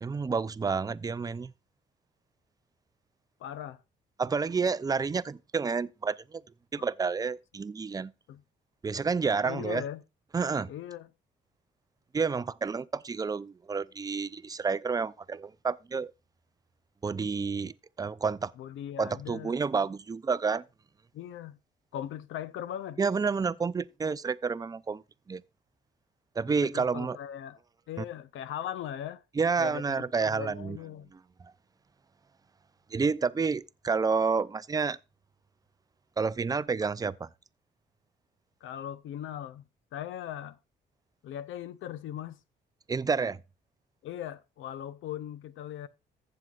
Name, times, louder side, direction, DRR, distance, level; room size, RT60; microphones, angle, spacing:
voice 1, 0.0-1.5 4.2-6.4 6.7-8.1 8.8-9.8 10.3-10.7 12.1-16.1 17.0-18.5 19.0-20.6 23.0-25.0 25.3-25.4 26.4-27.2 28.0-28.1 29.4-30.8 31.1-31.5 32.9-35.0 36.2-37.3 42.9-43.4, right 5 dB, 20° right, 0.4 m, -29 dB
voice 2, 3.4-3.8 8.3-8.4 9.4-10.0 10.7-11.1 18.6-19.6 21.1-21.6 21.9-23.0 26.5-27.6 27.9-29.2 29.6-31.1 38.6-39.6 39.9-40.6 41.2-42.4 44.0-45.9, left 10 dB, 80° left, 0.7 m, -39 dB
15.0 x 7.6 x 2.4 m
cardioid pair, 90°, 20 cm